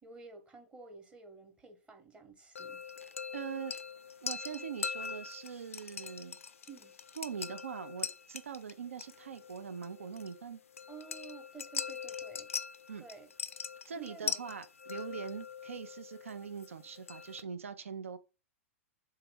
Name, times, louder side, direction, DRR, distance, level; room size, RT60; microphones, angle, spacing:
voice 1, 0.0-2.8 6.7-6.9 10.9-12.5 13.0-13.3 13.9-14.4, right 5 dB, 15° right, 0.9 m, -51 dB
sound 1, 2.6-17.4, left 6 dB, 75° left, 0.3 m, -42 dB
voice 2, 3.3-3.7 4.2-6.4 7.2-10.6 12.9-13.0 13.9-18.2, right 7 dB, 75° right, 0.5 m, -42 dB
3.6 x 2.9 x 4.6 m
figure-of-eight pair, 100°, 7 cm